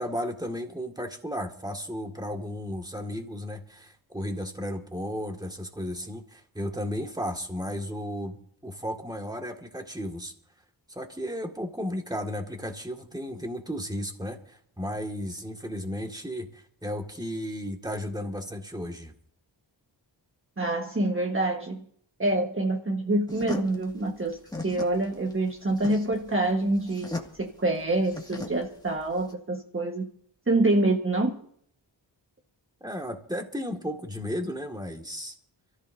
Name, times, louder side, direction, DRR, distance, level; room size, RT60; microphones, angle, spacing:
voice 1, 0.0-10.3 10.9-19.1 32.8-35.4, equal, 10° right, 3 dB, 2.1 m, -34 dB
voice 2, 20.6-21.8 22.2-24.4 24.6-30.1 30.5-31.4, right 2 dB, 30° right, 1 dB, 1.5 m, -26 dB
sound 1, 23.3-29.3, left 2 dB, 10° left, 2.1 m, -38 dB
28.0 x 14.5 x 2.8 m, 0.65 s
wide cardioid pair, 90°, 44 cm